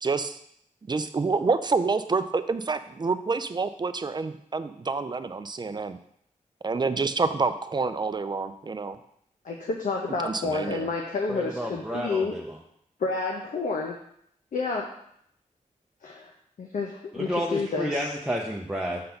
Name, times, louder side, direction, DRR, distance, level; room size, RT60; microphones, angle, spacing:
voice 1, 0.0-0.4 0.8-6.0 6.6-9.0 10.2-10.9, right 4 dB, 35° right, 11 dB, 0.5 m, -28 dB
voice 2, 9.4-12.3 13.0-14.0 14.5-14.9 16.0-16.3 16.6-18.0, left 4 dB, 75° left, 0 dB, 0.9 m, -29 dB
voice 3, 11.3-12.6 17.1-19.0, equal, 5° right, -2 dB, 0.8 m, -31 dB
6.6 x 4.0 x 5.8 m, 0.70 s
wide cardioid pair, 90°, 14 cm